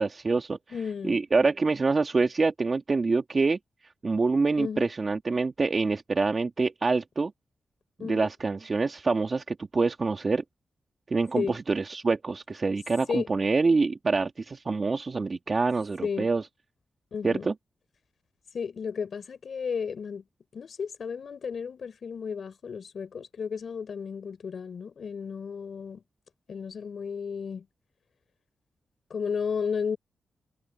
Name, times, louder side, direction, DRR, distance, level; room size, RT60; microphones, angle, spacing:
voice 1, 0.0-0.6 1.0-3.6 4.0-7.3 8.0-10.4 11.1-16.4 17.2-17.5, right 4 dB, 45° right, 2.1 m, -26 dB
voice 2, 0.7-1.2 4.6-4.9 8.0-8.3 11.3-11.6 13.1-13.3 16.0-16.3 17.1-17.5 18.5-20.2 20.5-26.0 26.5-27.7 29.1-30.0, left 6 dB, 65° left, 4.1 m, -33 dB
cardioid pair, 65°, 0 cm